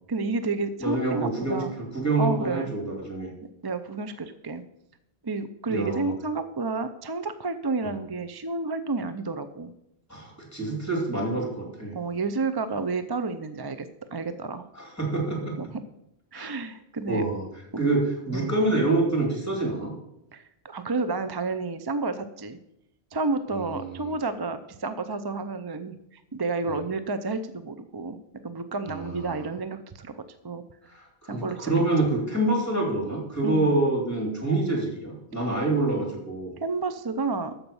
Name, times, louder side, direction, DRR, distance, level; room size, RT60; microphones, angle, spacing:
voice 1, 0.1-1.7 2.2-2.7 3.6-4.6 5.2-9.7 11.9-14.7 15.6-15.7 16.3-17.2 18.3-18.5 20.3-22.6 23.1-28.2 28.4-30.2 30.4-30.6 31.3-31.7 33.4-33.8 36.6-37.5, right 3 dB, 30° right, 11 dB, 0.5 m, -30 dB
voice 2, 0.8-1.6 1.9-3.3 5.7-6.1 7.8-7.9 10.1-11.9 14.7-15.5 16.3-16.5 17.1-17.4 17.8-19.9 23.5-24.1 26.7-26.8 28.9-29.4 30.9-36.5, right 2 dB, 15° left, 0 dB, 3.1 m, -27 dB
13.0 x 5.5 x 7.0 m, 0.82 s
omnidirectional pair, 1.0 m